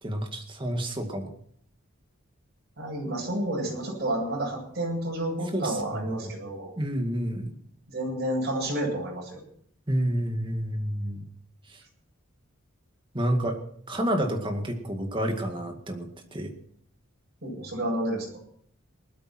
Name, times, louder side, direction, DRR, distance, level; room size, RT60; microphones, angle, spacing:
voice 1, 0.0-1.3 5.5-6.3 6.8-7.6 9.9-11.2 11.7-11.8 13.1-13.6 13.9-16.5, equal, 25° right, 4 dB, 2.1 m, -29 dB
voice 2, 2.8-6.7 7.9-9.4 17.4-18.4, right 1 dB, 50° right, -1 dB, 7.8 m, -30 dB
19.5 x 13.0 x 4.5 m, 0.63 s
head